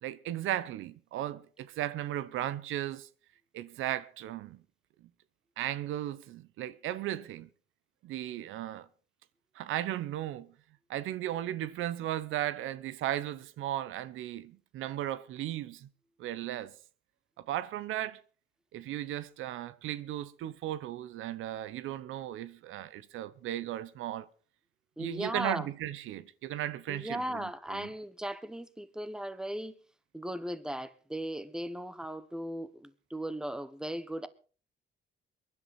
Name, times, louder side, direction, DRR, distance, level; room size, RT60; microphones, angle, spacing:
voice 1, 0.0-3.1 3.5-4.6 5.0-5.1 5.6-7.5 8.0-8.9 9.5-10.5 10.9-15.9 16.2-16.7 17.4-18.2 18.7-24.3 25.0-27.4 27.7-27.9, right 13 dB, 85° right, 0.8 m, -36 dB
voice 2, 25.0-25.7 26.9-29.7 30.1-34.3, right 1 dB, 5° right, 1.2 m, -37 dB
22.5 x 11.0 x 4.3 m
cardioid pair, 90°, 20 cm